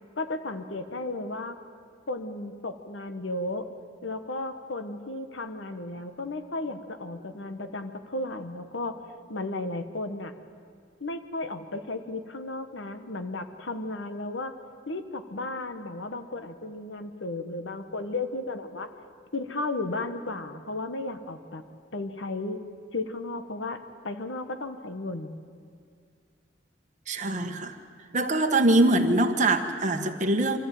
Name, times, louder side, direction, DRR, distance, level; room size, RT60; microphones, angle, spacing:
voice 1, 0.2-1.6 2.1-3.7 4.0-9.0 9.3-10.3 11.0-14.5 14.9-18.9 19.3-21.6 21.9-22.6 22.9-25.4, left 2 dB, 80° left, 9 dB, 1.2 m, -34 dB
voice 2, 27.1-27.8 28.1-30.6, right 2 dB, 40° right, 5 dB, 1.4 m, -23 dB
24.5 x 14.5 x 9.3 m, 2.2 s
head